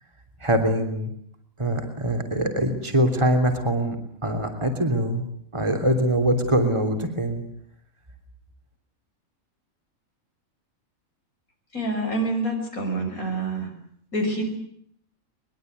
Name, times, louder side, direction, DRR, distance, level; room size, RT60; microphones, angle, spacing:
voice 1, 0.4-1.1 1.6-4.0 4.2-5.3 5.5-7.4, right 1 dB, 20° right, 4 dB, 3.3 m, -23 dB
voice 2, 11.7-13.7 14.1-14.4, right 2 dB, 90° left, 3 dB, 6.4 m, -27 dB
23.0 x 22.0 x 9.4 m, 0.67 s
omnidirectional pair, 1.4 m